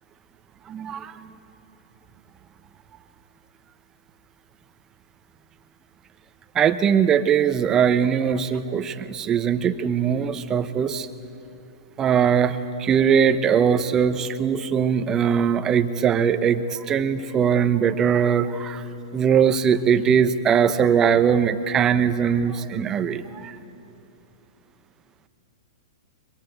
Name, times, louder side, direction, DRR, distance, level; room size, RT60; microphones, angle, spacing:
voice 1, 0.7-1.3 6.5-11.1 12.0-18.9 19.1-23.6, right 7 dB, 25° right, 11 dB, 1.0 m, -21 dB
23.0 x 22.5 x 8.0 m, 2.9 s
hypercardioid pair, 120°, 2 cm